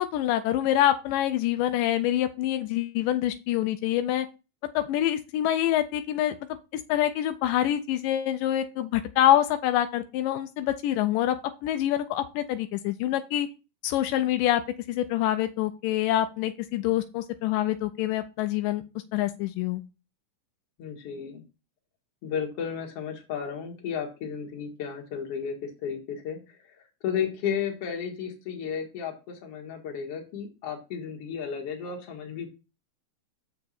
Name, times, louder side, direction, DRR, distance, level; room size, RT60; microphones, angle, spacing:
voice 1, 0.0-4.3 4.8-6.4 6.7-11.4 11.6-13.5 13.8-14.6 14.9-18.8 19.1-19.8, left 12 dB, 85° left, 9 dB, 2.2 m, -26 dB
voice 2, 20.8-21.4 22.2-26.8 27.0-32.5, left 7 dB, 50° left, 2 dB, 2.4 m, -33 dB
6.8 x 6.1 x 4.2 m, 0.30 s
omnidirectional pair, 3.8 m